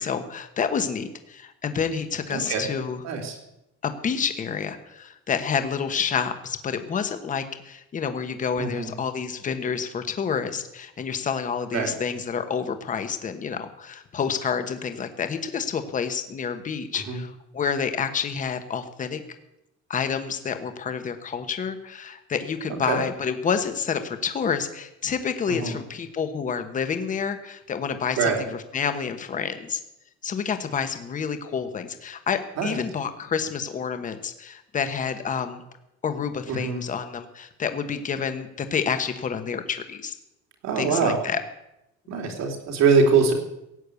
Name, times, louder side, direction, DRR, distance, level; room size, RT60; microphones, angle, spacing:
voice 1, 0.0-3.0 3.8-19.2 19.9-29.8 30.2-35.6 36.0-40.1 40.8-41.4, left 6 dB, 25° left, 8 dB, 1.2 m, -29 dB
voice 2, 2.3-2.6 3.0-3.4 8.6-8.9 11.7-11.9 17.1-17.2 22.9-23.0 25.5-25.8 28.2-28.4 32.6-32.8 36.5-36.8 40.6-41.2 42.1-43.3, right 5 dB, 65° right, 3 dB, 3.5 m, -23 dB
17.0 x 8.8 x 8.3 m, 0.87 s
cardioid pair, 175°, 30 cm